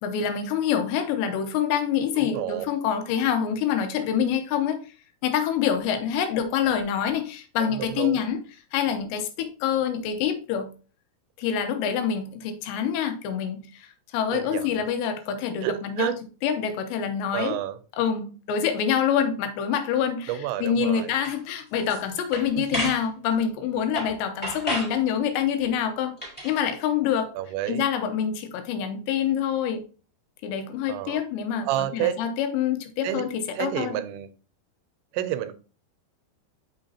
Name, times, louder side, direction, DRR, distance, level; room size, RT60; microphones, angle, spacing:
voice 1, 0.0-4.8 5.2-8.4 8.7-10.7 11.4-16.1 16.4-17.6 18.0-20.3 20.6-26.2 26.4-27.3 27.7-29.9 30.4-31.7 31.9-34.0, left 8 dB, 85° left, 3.0 m, -26 dB
voice 2, 2.2-2.7 7.6-8.3 14.3-14.8 15.6-16.2 17.3-17.8 20.3-21.1 22.6-22.8 27.3-27.8 30.9-31.2 31.6-32.2 33.0-33.2 33.5-34.3 35.1-35.6, right 13 dB, 85° right, 2.9 m, -30 dB
sound 1, 21.2-21.4 21.8-22.0 22.3-23.0 23.9-24.1 24.4-25.0 26.2-26.5, equal, 5° left, 2.7 m, -31 dB
6.5 x 5.7 x 2.7 m
omnidirectional pair, 5.1 m